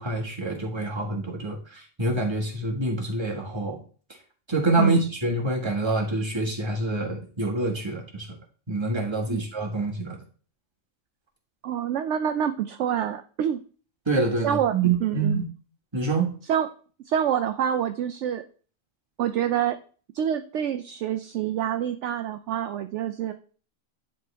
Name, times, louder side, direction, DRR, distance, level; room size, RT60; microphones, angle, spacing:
voice 1, 0.0-3.8 4.5-8.3 8.7-10.2 14.0-15.4 15.9-16.3, right 2 dB, 20° right, 0 dB, 1.6 m, -26 dB
voice 2, 11.6-13.6 14.4-15.4 16.5-16.7 17.1-18.4 19.2-19.8 20.1-23.3, right 9 dB, 70° right, 8 dB, 0.8 m, -27 dB
10.5 x 4.3 x 3.4 m, 0.40 s
omnidirectional pair, 1.4 m